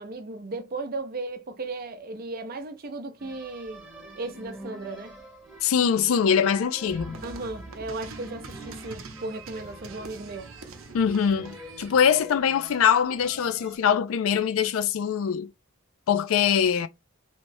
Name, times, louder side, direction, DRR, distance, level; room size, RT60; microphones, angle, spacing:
voice 1, 0.0-3.9 4.1-5.1 7.2-10.5, right 2 dB, 45° right, 0.6 m, -36 dB
sound 1, 3.2-13.8, equal, 5° right, 1.0 m, -46 dB
voice 2, 5.6-7.2 10.9-15.5 16.1-16.9, left 7 dB, 90° left, 0.4 m, -23 dB
sound 2, 6.9-12.0, right 4 dB, 85° right, 0.6 m, -44 dB
3.0 x 2.9 x 2.6 m
head